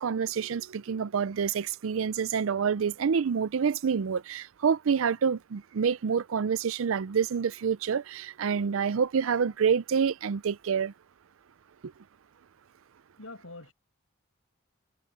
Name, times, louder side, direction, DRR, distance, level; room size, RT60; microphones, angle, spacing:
voice 1, 0.0-10.9 11.8-11.9, right 6 dB, 75° right, 0.4 m, -27 dB
voice 2, 13.2-13.7, left 2 dB, 80° left, 5.9 m, -44 dB
head